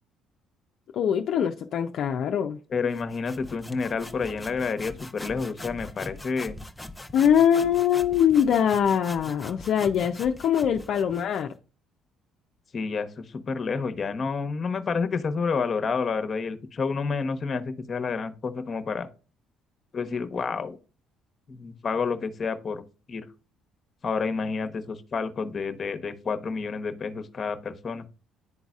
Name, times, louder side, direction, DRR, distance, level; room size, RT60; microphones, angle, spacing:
voice 1, 0.9-2.6 7.1-11.5, left 8 dB, 65° left, 0.5 m, -23 dB
voice 2, 2.7-6.6 12.7-19.1 19.9-20.8 21.5-22.8 23.1-23.2 24.0-28.0, left 5 dB, 40° left, 0.9 m, -29 dB
sound 1, 2.9-11.5, left 2 dB, 10° left, 0.6 m, -42 dB
11.0 x 4.0 x 2.4 m
supercardioid pair, 80°, 0 cm